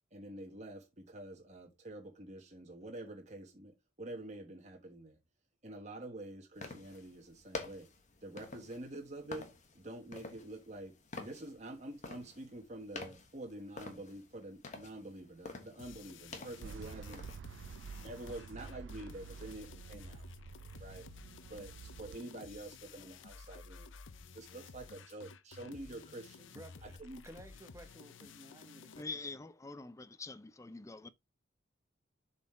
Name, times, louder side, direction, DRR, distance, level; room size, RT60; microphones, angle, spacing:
voice 1, 0.1-5.2 5.6-7.9 8.2-17.2 18.0-20.2 20.8-21.1 21.5-23.9 24.3-26.5 27.0-27.2, right 1 dB, 35° right, 1.3 m, -47 dB
sound 1, 6.6-17.4, left 3 dB, 40° left, 1.3 m, -49 dB
sound 2, 15.8-29.0, left 4 dB, 75° left, 0.6 m, -54 dB
sound 3, 16.6-22.2, right 5 dB, 70° right, 0.3 m, -49 dB
voice 2, 26.5-27.0 27.2-29.4, right 1 dB, 15° right, 1.2 m, -54 dB
voice 3, 29.0-31.1, left 3 dB, 15° left, 0.4 m, -45 dB
7.2 x 4.2 x 4.3 m
head